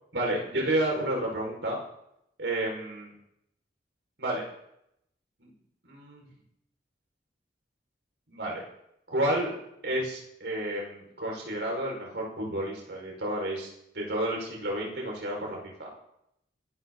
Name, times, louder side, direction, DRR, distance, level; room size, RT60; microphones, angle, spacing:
voice 1, 0.1-1.8 2.4-3.1 4.2-4.4 5.4-5.5 5.8-6.3 8.3-8.6 9.1-9.5 9.8-13.7 13.9-15.9, right 1 dB, 80° right, -1 dB, 5.5 m, -31 dB
23.0 x 12.5 x 4.1 m, 0.77 s
head